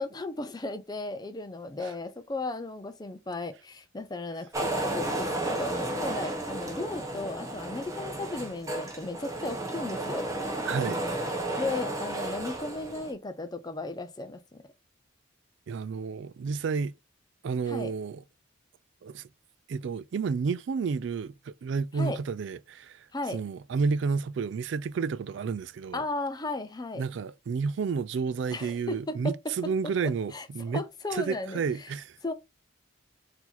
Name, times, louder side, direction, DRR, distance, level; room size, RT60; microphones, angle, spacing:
voice 1, 0.0-10.3 11.6-14.7 17.7-17.9 22.0-22.2 23.1-23.4 25.9-27.0 28.5-29.7 30.0-31.9 32.2-32.3, left 2 dB, 20° left, 0.5 m, -35 dB
sound 1, 4.5-13.1, right 1 dB, 15° right, 0.8 m, -33 dB
voice 2, 10.6-11.0 15.7-16.9 17.4-18.2 19.0-19.3 19.7-23.1 23.3-26.0 26.9-30.8 31.1-32.2, right 5 dB, 60° right, 0.3 m, -31 dB
4.4 x 2.8 x 4.0 m
head